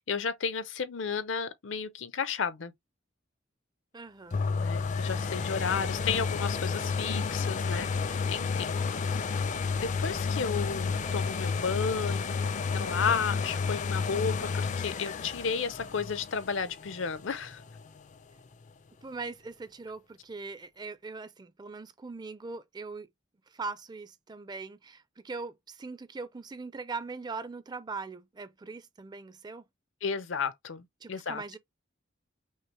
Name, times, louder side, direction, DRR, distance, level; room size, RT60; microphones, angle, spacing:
voice 1, 0.0-2.7 4.5-8.7 9.3-12.4 12.7-17.6 30.0-31.4, left 6 dB, 75° left, 0.7 m, -33 dB
voice 2, 3.9-4.4 19.0-23.1 23.5-29.7 31.0-31.6, right 4 dB, 20° right, 0.4 m, -41 dB
sound 1, 4.3-18.0 18.5-18.6, left 5 dB, 40° left, 0.4 m, -31 dB
sound 2, 15.5-17.6, equal, 85° right, 1.7 m, -54 dB
5.5 x 2.1 x 3.0 m
head